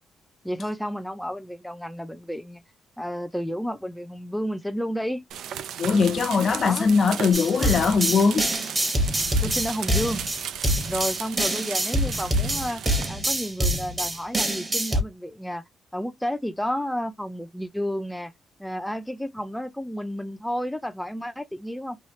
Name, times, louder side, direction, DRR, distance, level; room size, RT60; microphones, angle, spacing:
voice 1, 0.4-2.6 3.0-5.3 6.6-6.9 9.4-10.2 10.9-12.8 13.1-15.6 15.9-18.3 18.6-22.0, equal, 5° left, 0.5 m, -31 dB
sound 1, 5.3-13.1, right 9 dB, 80° right, 0.3 m, -36 dB
voice 2, 5.8-8.5, left 5 dB, 50° left, 0.6 m, -21 dB
sound 2, 7.3-15.0, right 1 dB, 25° right, 1.2 m, -25 dB
3.1 x 2.3 x 3.1 m
cardioid pair, 85°, 0 cm